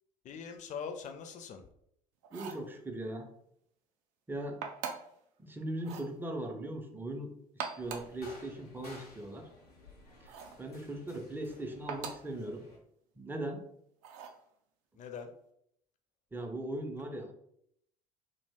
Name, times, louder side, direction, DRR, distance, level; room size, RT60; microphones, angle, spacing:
voice 1, 0.2-1.6 10.7-10.8 15.0-15.3, left 6 dB, 40° left, 6 dB, 0.5 m, -42 dB
sound 1, 2.2-2.7 4.6-5.2 5.8-6.1 7.4-8.2 10.3-10.6 11.9-12.3 14.0-14.4, right 6 dB, 65° right, 0.5 m, -42 dB
voice 2, 2.3-3.3 4.3-4.6 5.4-9.5 10.2-10.3 10.6-12.6 13.2-13.6 16.3-17.3, right 1 dB, 10° right, 4 dB, 0.5 m, -39 dB
sound 2, 7.8-12.8, left 2 dB, 90° left, 0.7 m, -55 dB
2.4 x 2.0 x 3.4 m, 0.72 s
figure-of-eight pair, 60°, 19 cm